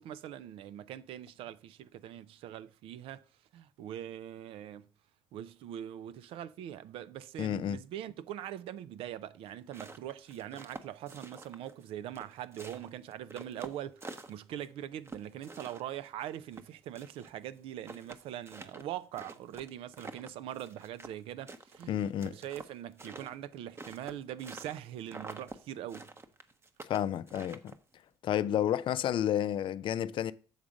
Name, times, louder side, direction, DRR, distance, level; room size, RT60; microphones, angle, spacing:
voice 1, 0.0-3.2 3.5-4.9 5.3-26.1, right 11 dB, 75° right, 0.5 m, -42 dB
voice 2, 7.4-7.8 21.9-22.3 26.9-27.8 28.2-30.3, left 10 dB, 60° left, 0.4 m, -31 dB
sound 1, 9.5-11.8 12.1-14.7 15.0-17.3 17.6-17.7 17.8-21.2 21.5-24.8 25.1-25.6 25.9-27.9, right 3 dB, 25° right, 0.8 m, -47 dB
7.2 x 3.7 x 6.2 m
supercardioid pair, 70°, 10 cm